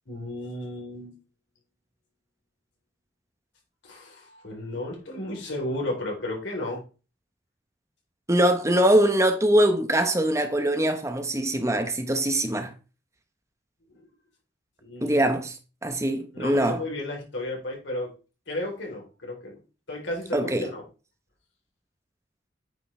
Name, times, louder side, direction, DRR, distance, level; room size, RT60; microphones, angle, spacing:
voice 1, 0.1-1.1 3.8-6.8 13.9-14.1 14.8-15.2 16.3-18.1 18.5-19.6 19.9-20.8, left 1 dB, 90° left, 3.8 m, -33 dB
voice 2, 8.3-12.7 15.0-15.6 15.8-16.8 20.3-20.7, right 1 dB, 15° right, 1.0 m, -22 dB
9.0 x 5.5 x 3.3 m
head